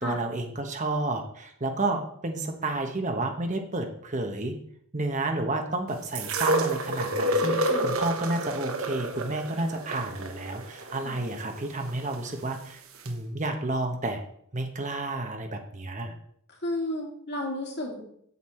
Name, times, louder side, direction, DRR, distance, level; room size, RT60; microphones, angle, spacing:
voice 1, 0.0-4.5 4.9-12.8 13.0-14.2 14.5-16.1, right 2 dB, 35° right, 4 dB, 1.1 m, -31 dB
sound 1, 6.1-12.2 13.1-13.2, right 1 dB, 70° right, 1.2 m, -29 dB
voice 2, 16.6-18.0, left 1 dB, 50° left, -1 dB, 2.6 m, -32 dB
8.2 x 8.1 x 4.4 m, 0.67 s
head